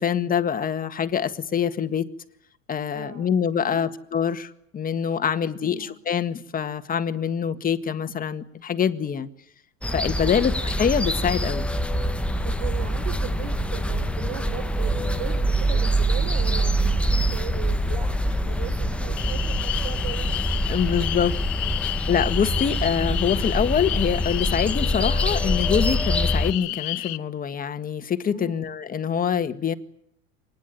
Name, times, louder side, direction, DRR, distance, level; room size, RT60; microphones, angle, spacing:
voice 1, 0.0-2.1 2.7-9.3 9.9-11.7 20.7-21.3 22.1-29.7, left 8 dB, 25° left, 1.8 m, -25 dB
voice 2, 2.9-3.3 3.6-3.9 5.6-6.0 10.2-10.5 12.4-21.2 28.3-28.7, right 10 dB, 75° right, 3.5 m, -39 dB
sound 1, 9.8-26.5, equal, 5° left, 1.2 m, -25 dB
sound 2, 19.2-27.2, left 22 dB, 70° left, 1.4 m, -31 dB
26.0 x 20.5 x 9.3 m
supercardioid pair, 125°, 32 cm